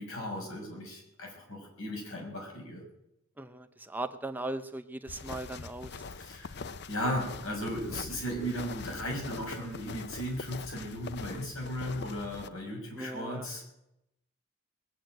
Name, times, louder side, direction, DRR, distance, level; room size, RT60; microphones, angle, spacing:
voice 1, 0.0-2.8 6.2-6.6 6.9-13.6, equal, 90° left, 0 dB, 5.9 m, -36 dB
voice 2, 3.4-6.0 13.0-13.5, right 2 dB, 10° right, 9 dB, 0.6 m, -38 dB
sound 1, 5.1-12.5, left 4 dB, 55° left, 0.6 m, -43 dB
20.0 x 7.8 x 9.0 m, 0.87 s
head